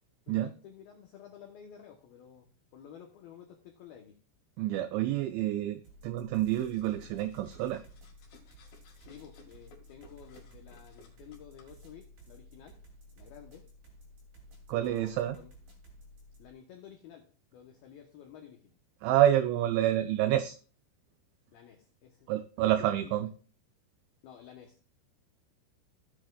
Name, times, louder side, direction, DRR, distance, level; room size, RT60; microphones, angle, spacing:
voice 1, 0.3-4.2 9.0-12.8 13.2-13.7 14.8-15.5 16.4-18.8 21.5-22.3 22.6-22.7 23.0-23.3 24.2-24.8, left 8 dB, 90° left, 3 dB, 2.1 m, -52 dB
voice 2, 4.6-7.8 14.7-15.4 19.0-20.6 22.3-23.3, right 12 dB, 85° right, 10 dB, 2.6 m, -28 dB
sound 1, 5.8-16.5, equal, 45° right, 3.8 m, -55 dB
sound 2, 6.5-11.6, left 3 dB, 55° left, 3.0 m, -59 dB
15.5 x 8.7 x 2.3 m, 0.39 s
omnidirectional pair, 5.7 m